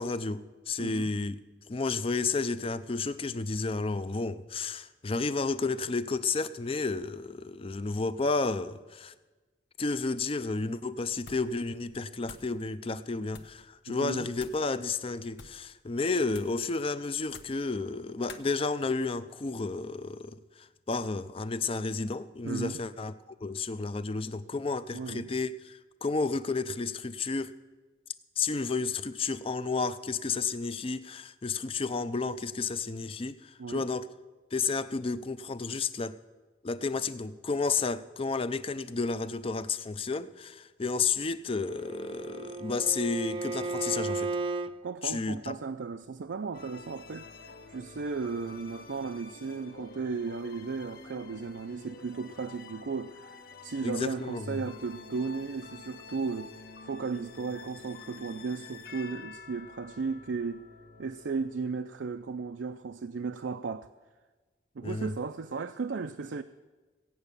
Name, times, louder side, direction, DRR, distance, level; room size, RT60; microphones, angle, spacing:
voice 1, 0.0-1.4 1.7-9.1 9.8-23.1 23.4-27.5 28.4-34.1 34.5-36.2 36.6-44.3 45.0-45.6 53.8-54.6 64.8-65.1, left 4 dB, 30° left, 0.5 m, -32 dB
voice 2, 0.8-1.1 13.9-14.3 22.4-22.8 24.9-25.3 33.6-33.9 44.8-47.3 47.7-56.5 56.8-60.6 61.0-63.9 64.8-66.4, right 4 dB, 80° right, 0.5 m, -35 dB
sound 1, 11.2-11.6 11.9-12.6 13.3-13.6 14.3-14.7 15.3-15.7 16.3-16.6 17.3-17.7 18.3-18.5, left 4 dB, 75° left, 1.0 m, -49 dB
Bowed string instrument, 41.6-44.7, right 3 dB, 25° right, 0.5 m, -34 dB
sound 2, 46.5-62.3, left 4 dB, 55° left, 0.9 m, -49 dB
16.5 x 8.9 x 6.9 m
head